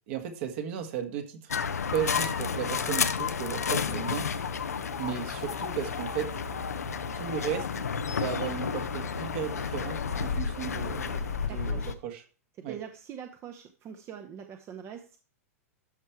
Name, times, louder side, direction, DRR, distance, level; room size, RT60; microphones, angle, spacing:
voice 1, 0.1-1.5 1.9-4.3 5.0-6.3 7.1-12.2 12.6-12.8, right 9 dB, 55° right, 6 dB, 1.7 m, -35 dB
sound 1, 1.5-11.9, left 6 dB, 85° left, 0.7 m, -31 dB
sound 2, 1.9-11.5, right 1 dB, 5° left, 1.1 m, -47 dB
voice 2, 11.5-11.9 12.7-15.2, right 8 dB, 30° right, 6 dB, 0.9 m, -43 dB
13.0 x 4.6 x 4.6 m, 0.40 s
hypercardioid pair, 110°, 8 cm